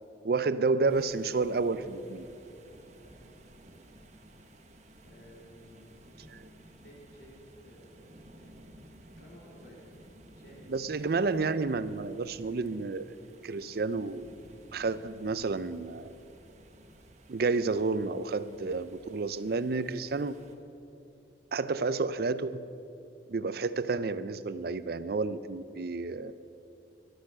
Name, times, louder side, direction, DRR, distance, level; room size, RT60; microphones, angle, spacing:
voice 1, 0.2-2.3 6.3-6.4 10.7-13.1 13.4-14.3 14.7-16.2 17.3-20.3 21.5-22.7 23.3-26.3, right 3 dB, 55° right, 15 dB, 0.5 m, -30 dB
sound 1, 0.9-20.5, right 1 dB, 40° right, 1.1 m, -55 dB
voice 2, 3.0-3.3 5.0-6.4 6.8-8.7 9.2-11.1, equal, 60° left, -3 dB, 3.7 m, -55 dB
12.0 x 11.5 x 7.5 m, 2.8 s
head